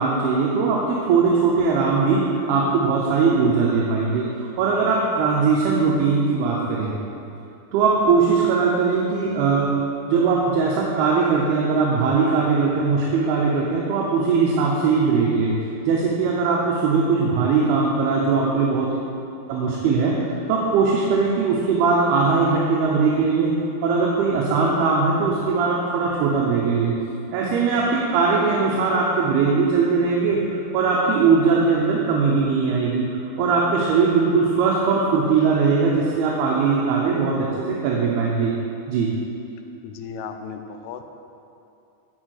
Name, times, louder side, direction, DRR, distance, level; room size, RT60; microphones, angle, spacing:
voice 1, 0.0-6.9 7.7-9.7 10.1-15.5 15.9-18.9 19.5-23.5 23.8-27.0 27.3-38.5 38.9-39.1, right 4 dB, 90° right, -3 dB, 2.8 m, -20 dB
voice 2, 39.8-41.0, left 6 dB, 85° left, 7 dB, 2.5 m, -35 dB
10.5 x 4.4 x 6.4 m, 2.7 s
omnidirectional pair, 4.4 m